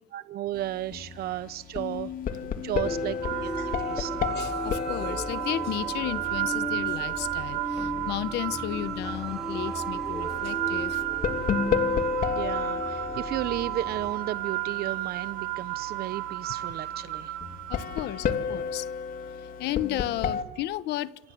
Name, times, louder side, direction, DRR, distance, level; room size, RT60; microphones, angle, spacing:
voice 1, 0.1-3.5 3.8-4.2 12.3-17.3, right 13 dB, 65° right, 0.9 m, -34 dB
sound 1, 0.5-20.4, left 6 dB, 55° left, 3.3 m, -33 dB
sound 2, 2.8-14.1, equal, 5° right, 3.1 m, -37 dB
sound 3, 3.2-18.3, right 17 dB, 85° right, 2.0 m, -33 dB
voice 2, 4.3-11.0 17.7-18.9 19.6-21.1, left 14 dB, 80° left, 1.4 m, -33 dB
29.0 x 25.5 x 8.0 m
cardioid pair, 110°, 17 cm